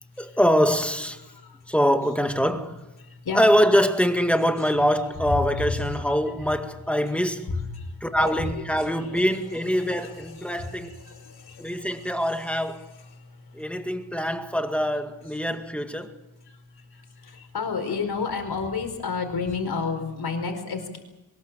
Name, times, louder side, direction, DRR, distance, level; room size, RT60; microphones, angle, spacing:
voice 1, 0.2-1.2 1.7-2.8 3.3-7.5 8.0-10.9 11.6-12.9 13.5-16.1, equal, 5° left, 2.0 m, -24 dB
voice 2, 1.2-1.6 3.0-3.4 5.6-6.5 7.1-9.4 9.8-12.2 12.8-13.7 16.5-21.0, left 4 dB, 55° left, 4.8 m, -33 dB
23.0 x 21.0 x 7.4 m
wide cardioid pair, 110°, 45 cm